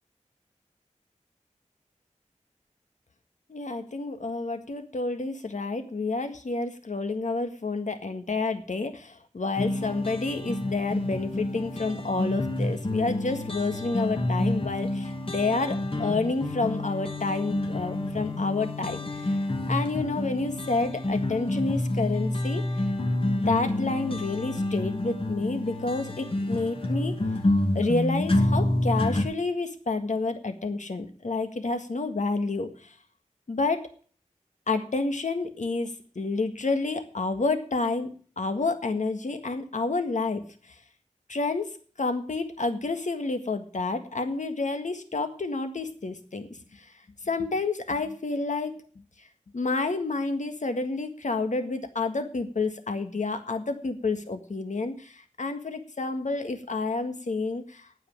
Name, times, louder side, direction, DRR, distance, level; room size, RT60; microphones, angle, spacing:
voice 1, 3.5-19.4 19.7-22.6 23.4-27.2 27.7-33.0 33.5-33.9 34.7-38.1 38.4-40.8 41.3-41.7 42.0-46.9 47.2-48.8 49.2-49.3 49.5-57.9, left 3 dB, 70° left, 7 dB, 1.8 m, -29 dB
sound 1, 9.6-29.2, left 1 dB, 45° left, 2.1 m, -28 dB
9.2 x 8.0 x 8.6 m, 0.43 s
wide cardioid pair, 70°, 13 cm